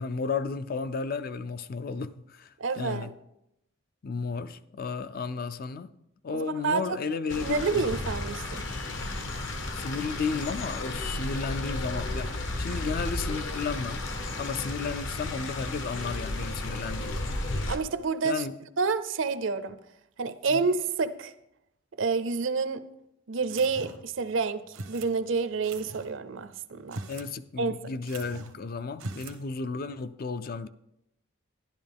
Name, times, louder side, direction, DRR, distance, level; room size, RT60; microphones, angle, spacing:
voice 1, 0.0-3.1 4.0-5.9 6.2-7.9 9.7-14.0 14.4-17.2 18.2-18.5 20.5-20.6 27.1-30.7, left 4 dB, 45° left, 0.4 m, -33 dB
voice 2, 2.6-3.1 6.3-6.8 7.4-8.7 17.7-18.4 18.8-19.8 20.2-21.3 22.0-22.8 23.3-27.0 27.6-27.8, right 4 dB, 65° right, 0.6 m, -29 dB
sound 1, 7.3-17.8, left 2 dB, 60° left, 1.0 m, -33 dB
sound 2, 23.5-24.1 24.7-25.1 25.6-26.1 26.8-27.3 27.6-27.7 28.1-28.6 28.9-29.4, right 2 dB, 85° right, 1.0 m, -41 dB
11.5 x 11.0 x 3.5 m
head